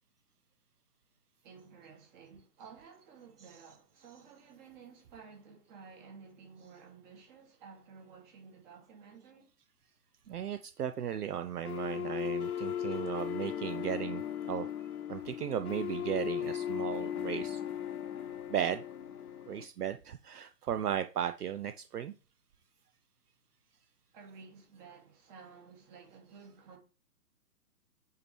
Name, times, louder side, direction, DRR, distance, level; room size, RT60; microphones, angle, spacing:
voice 1, 1.4-9.5 24.1-26.8, right 5 dB, 30° right, 2.3 m, -54 dB
voice 2, 10.3-14.2 14.5-14.7 15.1-17.6 18.5-18.8 19.5-22.1, right 9 dB, 65° right, 0.6 m, -36 dB
sound 1, 11.6-19.6, left 10 dB, 60° left, 0.9 m, -37 dB
8.4 x 4.6 x 3.3 m
figure-of-eight pair, 130°, 50 cm